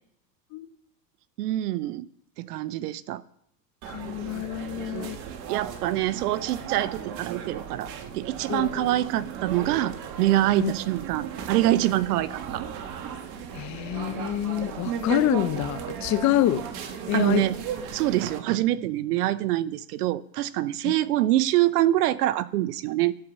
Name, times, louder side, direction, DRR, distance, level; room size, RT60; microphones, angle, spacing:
voice 1, 1.4-2.1 2.4-3.2 5.5-12.6 17.1-17.6 17.9-23.1, right 14 dB, 70° right, 0.8 m, -25 dB
sound 1, 3.8-18.4, right 8 dB, 45° right, 1.5 m, -36 dB
voice 2, 3.9-5.2 8.5-8.9 10.6-10.7 13.5-16.6 17.1-17.4 20.8-20.9, left 13 dB, 35° left, 0.8 m, -27 dB
11.5 x 6.7 x 7.2 m
hypercardioid pair, 115°, 49 cm